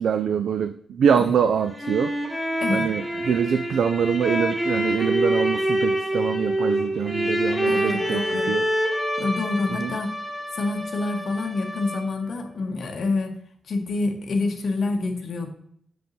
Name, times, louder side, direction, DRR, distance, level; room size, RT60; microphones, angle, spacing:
voice 1, 0.0-2.1 2.7-8.7 9.8-9.9, right 7 dB, 70° right, 9 dB, 0.3 m, -24 dB
sound 1, 1.4-12.3, equal, 5° right, 1.0 m, -26 dB
voice 2, 7.7-8.5 9.2-10.1 10.5-13.3 13.7-15.5, left 3 dB, 55° left, 3 dB, 1.0 m, -27 dB
7.2 x 5.1 x 3.1 m, 0.68 s
wide cardioid pair, 170°, 0 cm